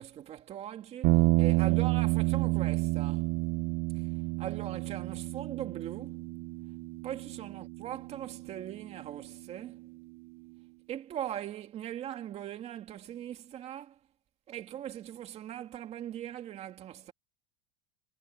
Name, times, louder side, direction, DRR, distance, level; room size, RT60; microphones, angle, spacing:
voice 1, 0.0-3.3 3.9-4.1 4.4-6.3 7.0-9.9 10.9-14.0 14.5-17.1, right 11 dB, 35° right, 2.4 m, -40 dB
sound 1, 1.0-9.4, right 22 dB, 50° right, 0.7 m, -30 dB
supercardioid pair, 145°, 20 cm